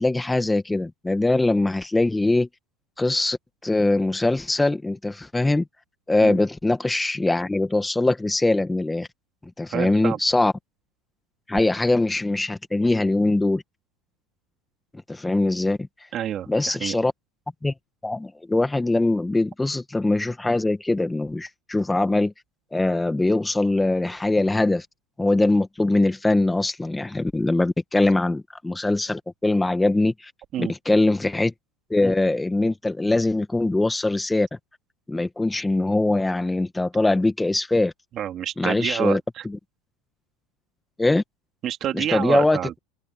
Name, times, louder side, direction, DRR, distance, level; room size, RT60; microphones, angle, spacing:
voice 1, 0.0-2.5 3.0-3.4 3.6-5.6 6.1-9.1 9.6-10.5 11.5-13.6 15.1-15.8 16.5-17.1 17.6-17.7 18.0-22.3 22.7-24.8 25.2-30.3 30.6-31.5 31.9-34.5 35.1-37.9 38.6-39.2 41.0-41.2 41.9-42.8, left 2 dB, 10° left, 1.7 m, -22 dB
voice 2, 9.7-10.2 16.1-16.9 30.5-30.7 38.1-39.5 41.6-42.8, right 11 dB, 40° right, 2.9 m, -28 dB
open air
hypercardioid pair, 100°, 0 cm